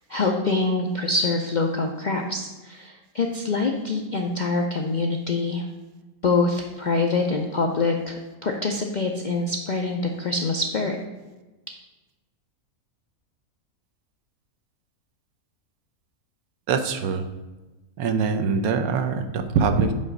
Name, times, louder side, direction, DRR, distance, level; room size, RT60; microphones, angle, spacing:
voice 1, 0.1-5.7 6.2-11.0, left 3 dB, 65° left, 2 dB, 0.4 m, -25 dB
voice 2, 16.7-17.3 18.0-19.9, right 5 dB, 85° right, 8 dB, 1.2 m, -23 dB
5.4 x 4.9 x 6.4 m, 1.1 s
omnidirectional pair, 1.5 m